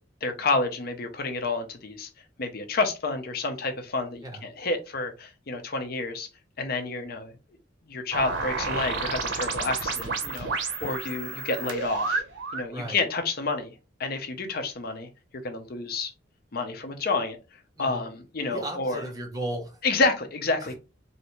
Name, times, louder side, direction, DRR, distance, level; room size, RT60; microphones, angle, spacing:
voice 1, 0.2-2.1 2.4-6.3 6.6-7.3 7.9-12.2 12.5-13.7 14.0-15.1 15.4-16.1 16.5-17.4 17.8-19.0 19.8-20.7, left 3 dB, 55° left, 0.6 m, -29 dB
sound 1, 8.1-12.7, right 4 dB, 85° right, 0.8 m, -30 dB
voice 2, 17.8-18.1 18.5-19.8 20.6-20.7, right 1 dB, 20° right, 0.8 m, -35 dB
3.1 x 2.7 x 2.9 m
head